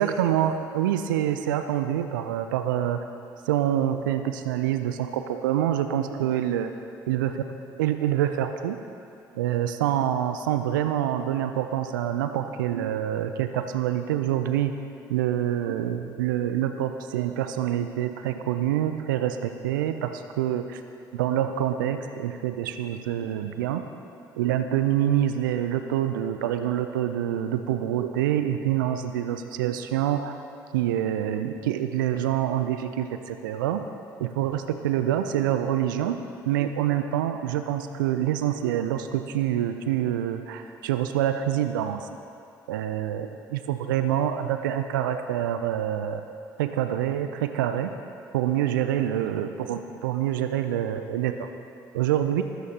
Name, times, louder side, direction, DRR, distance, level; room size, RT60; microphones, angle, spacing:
voice 1, 0.0-3.0 3.5-6.7 7.1-7.3 7.8-8.8 9.3-14.8 15.1-20.8 21.1-23.9 24.4-30.4 30.7-33.8 34.2-36.2 36.5-42.1 42.7-46.2 46.6-47.9 48.3-51.5 51.9-52.4, right 11 dB, 80° right, 8 dB, 0.4 m, -26 dB
14.0 x 13.0 x 2.9 m, 2.6 s
hypercardioid pair, 45°, 11 cm